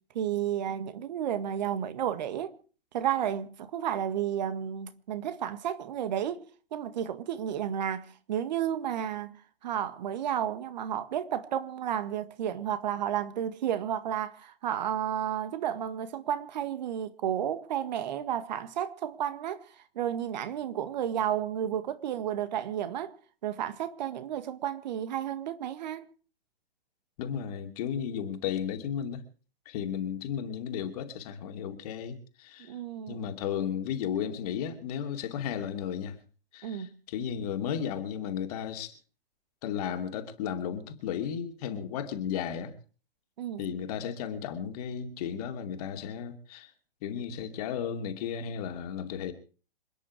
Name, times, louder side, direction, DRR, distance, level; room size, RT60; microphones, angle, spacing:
voice 1, 0.1-2.5 2.9-6.4 6.7-9.4 9.6-23.1 23.4-26.1 32.7-33.2 36.6-36.9 43.4-43.6, right 10 dB, 45° right, 1.7 m, -32 dB
voice 2, 27.2-29.2 29.7-32.8 33.1-36.2 36.5-38.9 39.6-42.7 43.6-46.7 47.0-49.3, left 8 dB, 40° left, 2.7 m, -34 dB
27.0 x 10.0 x 4.9 m
figure-of-eight pair, 110°, 30 cm